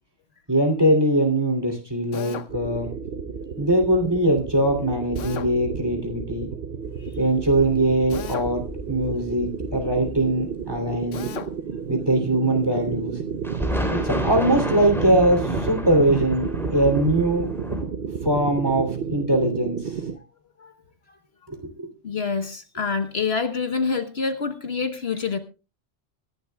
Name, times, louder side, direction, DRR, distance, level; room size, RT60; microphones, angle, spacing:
voice 1, 0.5-2.9 3.6-6.5 7.2-11.3 11.9-13.2 13.9-17.5 18.2-19.9 21.5-21.9, right 1 dB, 20° right, 4 dB, 3.0 m, -22 dB
Drill, 2.1-2.5 5.1-5.5 8.1-8.5 11.1-11.5, left 8 dB, 80° left, 1.2 m, -35 dB
sound 1, 2.5-20.2, right 6 dB, 55° right, 0.9 m, -32 dB
sound 2, 6.8-11.0 11.5-11.6 12.5-12.6 13.1-13.2 13.4-17.8, equal, ahead, 3.0 m, -32 dB
voice 2, 22.0-25.4, left 5 dB, 55° left, 8 dB, 1.4 m, -26 dB
24.5 x 11.5 x 2.3 m, 0.32 s
omnidirectional pair, 1.3 m